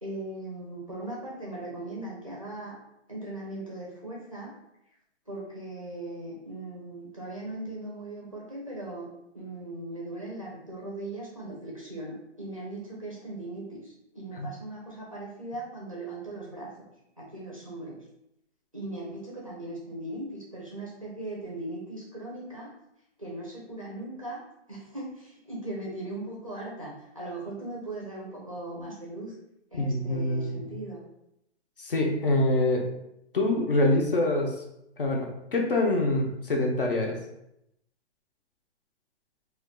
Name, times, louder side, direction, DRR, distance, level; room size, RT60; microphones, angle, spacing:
voice 1, 0.0-2.8 3.1-4.5 5.3-9.1 9.3-16.9 17.2-18.0 18.7-22.7 23.2-24.4 24.7-29.3 29.7-31.0, right 2 dB, 30° right, -4 dB, 0.5 m, -39 dB
voice 2, 29.7-30.6 31.8-32.8 33.3-34.5 35.0-37.2, left 2 dB, 50° left, 1 dB, 0.6 m, -25 dB
2.3 x 2.2 x 3.6 m, 0.82 s
hypercardioid pair, 175°, 35 cm